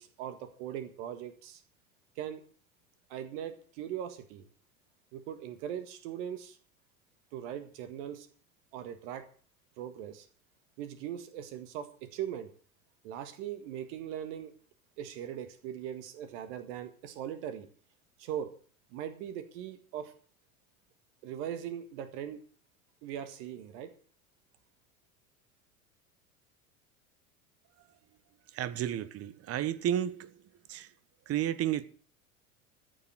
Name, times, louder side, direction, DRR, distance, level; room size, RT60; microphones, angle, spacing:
voice 1, 0.0-1.6 2.2-2.4 3.1-4.5 5.1-6.6 7.3-8.3 8.7-9.3 9.8-10.3 10.8-12.5 13.0-14.5 15.0-17.7 18.2-18.5 18.9-20.1 21.2-22.4 23.0-23.9, right 10 dB, 55° right, 1.8 m, -40 dB
voice 2, 28.5-30.3 30.7-30.9 31.3-31.8, right 11 dB, 35° right, 1.2 m, -32 dB
15.0 x 7.0 x 8.0 m
figure-of-eight pair, 80°, 43 cm